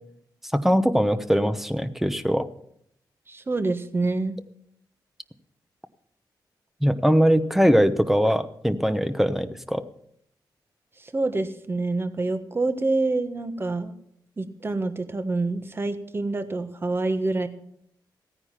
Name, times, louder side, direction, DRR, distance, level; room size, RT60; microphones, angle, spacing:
voice 1, 0.5-2.5 6.8-9.8, equal, 5° right, 11 dB, 0.9 m, -21 dB
voice 2, 3.3-4.4 11.0-13.9 14.4-17.5, right 3 dB, 30° right, 10 dB, 1.3 m, -27 dB
15.5 x 9.7 x 5.8 m, 0.70 s
cardioid pair, 95°, 8 cm